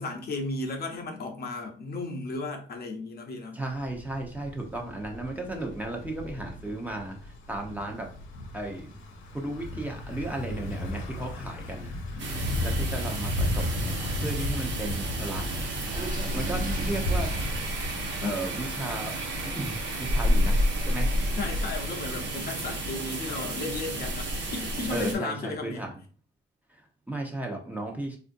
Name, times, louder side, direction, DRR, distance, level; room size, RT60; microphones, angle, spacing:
voice 1, 0.0-3.6 12.1-12.8 18.2-18.4 21.4-25.9, left 3 dB, 50° left, 0.8 m, -34 dB
voice 2, 3.5-8.1 8.5-8.9 9.3-11.9 12.6-15.9 16.3-17.3 18.2-19.2 19.4-21.3 24.9-25.9 26.7-28.2, right 2 dB, 10° right, 0.8 m, -35 dB
Thunder / Bicycle, 3.7-22.1, left 1 dB, 80° left, 0.8 m, -35 dB
sound 1, 12.2-25.1, equal, 65° right, 1.0 m, -31 dB
Water / Sink (filling or washing), 15.9-17.7, equal, 40° right, 1.0 m, -32 dB
3.6 x 2.5 x 2.6 m
cardioid pair, 90°, 20 cm